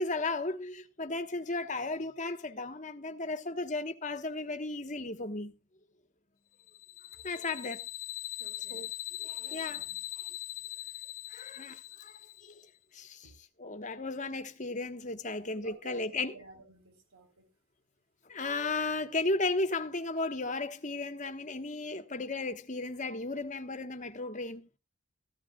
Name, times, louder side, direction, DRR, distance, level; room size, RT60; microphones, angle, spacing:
voice 1, 0.0-5.5 7.2-7.8 8.7-8.9 9.2-9.8 11.3-12.1 12.9-13.3 13.6-16.3 18.3-24.7, left 3 dB, 35° left, 1.2 m, -35 dB
sound 1, 6.7-12.6, left 15 dB, 75° left, 0.6 m, -41 dB
voice 2, 8.4-8.9 9.4-10.0 13.2-13.3 15.5-17.5, right 2 dB, 90° right, 3.7 m, -53 dB
14.5 x 14.5 x 2.3 m
head